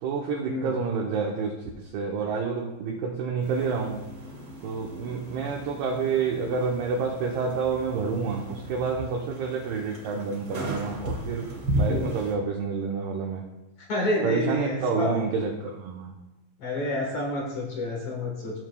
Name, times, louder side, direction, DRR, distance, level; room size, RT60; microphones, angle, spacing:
voice 1, 0.0-4.0 4.6-13.5 14.2-16.1, right 5 dB, 75° right, 0 dB, 2.5 m, -29 dB
sound 1, 3.4-12.3, equal, 35° right, 2.4 m, -35 dB
voice 2, 13.9-15.1 16.6-18.6, left 1 dB, 70° left, -2 dB, 1.7 m, -29 dB
15.5 x 7.1 x 2.2 m, 1.0 s
omnidirectional pair, 5.2 m